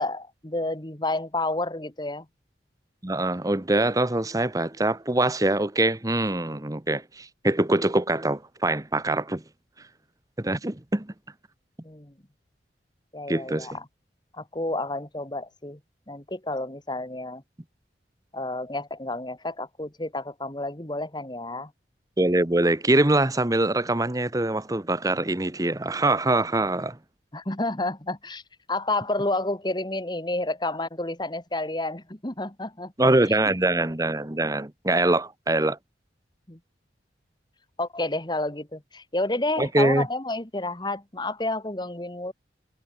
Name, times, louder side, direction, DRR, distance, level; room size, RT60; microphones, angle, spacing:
voice 1, 0.0-2.3 11.8-12.1 13.1-13.8 14.3-15.8 16.1-17.4 18.3-21.7 27.3-28.4 28.7-32.9 36.5-36.6 37.8-42.3, left 2 dB, 25° left, 2.0 m, -30 dB
voice 2, 3.0-9.4 10.4-11.1 13.3-13.7 22.2-27.0 33.0-35.8 39.6-40.1, right 2 dB, 20° right, 1.0 m, -23 dB
head